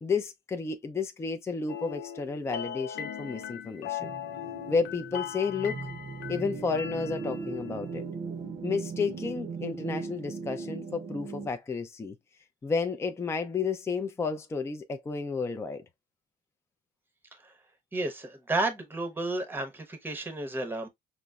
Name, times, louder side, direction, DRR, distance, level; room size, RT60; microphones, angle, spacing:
voice 1, 0.0-4.1 4.7-5.8 6.3-8.0 8.6-12.2 12.6-15.8, left 5 dB, 15° left, 0.4 m, -31 dB
sound 1, 1.7-7.7, left 9 dB, 85° left, 0.5 m, -39 dB
sound 2, 4.0-11.5, right 4 dB, 45° right, 0.6 m, -38 dB
voice 2, 17.9-20.9, right 2 dB, 10° right, 0.8 m, -32 dB
5.1 x 2.0 x 2.3 m
cardioid pair, 110°, 17 cm